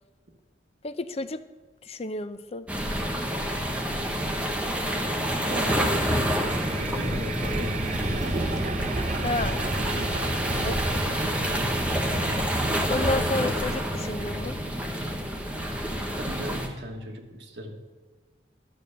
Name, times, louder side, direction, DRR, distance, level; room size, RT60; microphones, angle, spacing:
voice 1, 0.8-1.4 1.8-2.7 9.2-9.6 10.6-11.0 12.9-14.6, left 2 dB, 35° left, 12 dB, 0.5 m, -31 dB
sound 1, 2.7-16.7, equal, 5° right, 1.0 m, -28 dB
sound 2, 5.4-14.4, right 2 dB, 40° right, 0.7 m, -33 dB
voice 2, 5.5-6.4 6.7-8.6 10.6-10.9 13.1-13.6 16.2-17.8, equal, 75° right, 3 dB, 1.4 m, -36 dB
11.5 x 6.9 x 6.6 m, 1.3 s
head